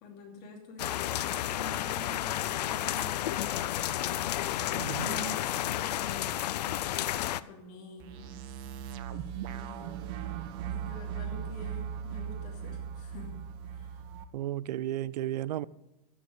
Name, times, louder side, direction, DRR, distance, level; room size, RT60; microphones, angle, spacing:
voice 1, 0.0-8.4 9.3-10.0 10.6-13.4 13.7-14.0, left 3 dB, 35° left, 2.7 m, -47 dB
sound 1, 0.8-7.4, left 13 dB, 80° left, 0.5 m, -31 dB
voice 2, 4.7-5.4 14.3-15.7, right 13 dB, 80° right, 0.5 m, -34 dB
sound 2, 8.0-14.2, right 8 dB, 25° right, 0.5 m, -38 dB
13.0 x 7.2 x 6.5 m
supercardioid pair, 175°, 21 cm